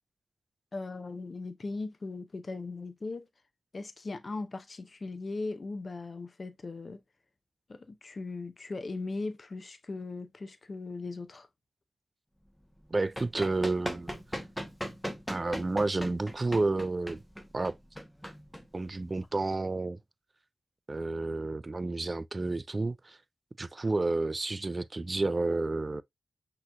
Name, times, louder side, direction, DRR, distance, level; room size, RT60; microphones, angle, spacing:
voice 1, 0.7-3.3 3.7-7.0 7.7-11.5, left 3 dB, 45° left, 0.7 m, -38 dB
Run, 12.8-19.2, equal, 5° left, 1.0 m, -39 dB
voice 2, 12.9-14.1 15.3-17.2 17.5-17.8 18.7-20.0 20.9-23.2 23.6-26.0, right 2 dB, 35° right, 0.4 m, -30 dB
5.9 x 3.0 x 2.4 m
cardioid pair, 50°, 0 cm